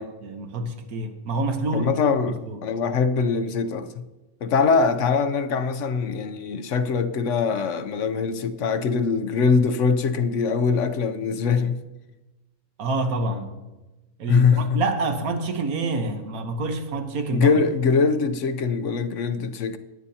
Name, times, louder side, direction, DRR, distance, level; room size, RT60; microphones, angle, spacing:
voice 1, 0.2-1.9 2.3-2.6 12.8-13.5 14.2-17.5, right 2 dB, 85° right, 1.5 m, -27 dB
voice 2, 1.7-4.0 4.4-11.8 14.3-14.8 17.3-19.8, left 5 dB, 65° left, 1.0 m, -22 dB
18.5 x 10.0 x 2.8 m
omnidirectional pair, 1.5 m